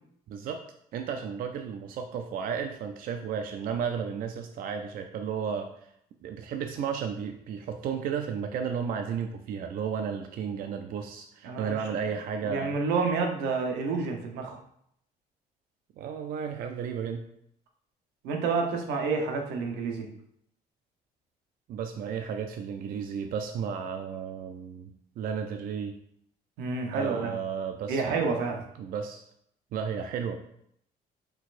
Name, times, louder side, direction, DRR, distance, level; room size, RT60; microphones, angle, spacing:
voice 1, 0.3-0.6 0.9-5.9 6.2-12.8 16.0-17.3 21.7-24.9 25.2-26.0 26.9-28.0 28.8-29.2 29.7-30.4, right 7 dB, 60° right, 5 dB, 0.4 m, -33 dB
voice 2, 11.4-11.8 12.4-14.6 18.2-20.1 26.6-27.3 27.9-28.6, right 4 dB, 90° right, 3 dB, 0.8 m, -29 dB
4.6 x 4.1 x 2.5 m, 0.71 s
cardioid pair, 110°, 17 cm